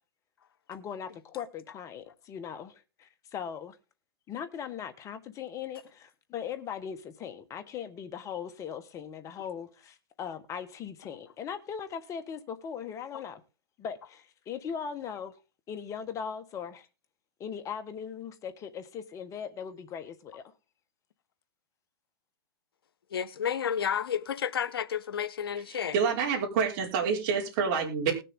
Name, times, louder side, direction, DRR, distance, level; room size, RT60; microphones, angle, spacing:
voice 1, 0.7-3.8 4.3-13.4 13.8-15.3 15.7-16.9 17.4-20.4, left 7 dB, 25° left, 1.4 m, -39 dB
voice 2, 23.1-25.9, left 8 dB, 75° left, 1.0 m, -31 dB
voice 3, 25.7-28.1, right 6 dB, 45° right, 5.2 m, -28 dB
20.0 x 6.7 x 3.7 m
hypercardioid pair, 125°, 12 cm